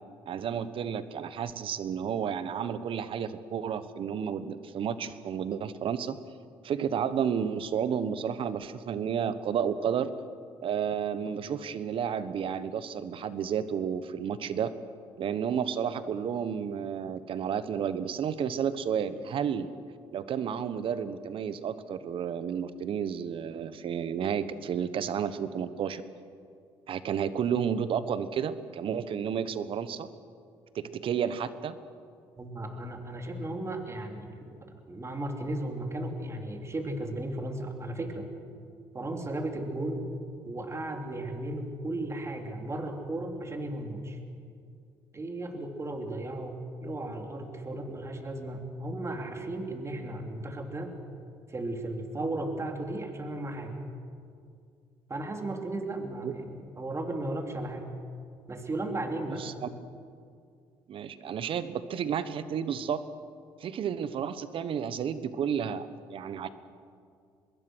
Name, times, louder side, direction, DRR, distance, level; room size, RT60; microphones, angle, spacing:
voice 1, 0.3-6.2 6.6-10.1 10.6-14.7 15.2-19.7 20.1-26.0 26.9-30.1 30.7-31.8 56.2-56.3 59.4-59.7 60.9-63.0 63.6-66.5, right 8 dB, 60° right, 13 dB, 1.2 m, -31 dB
voice 2, 32.4-34.3 34.9-38.3 38.9-40.1 40.4-44.2 45.1-51.0 51.5-53.8 55.1-57.9 58.5-59.5, right 1 dB, 30° right, 4 dB, 3.3 m, -35 dB
25.0 x 21.5 x 6.3 m, 2.3 s
supercardioid pair, 75°, 10 cm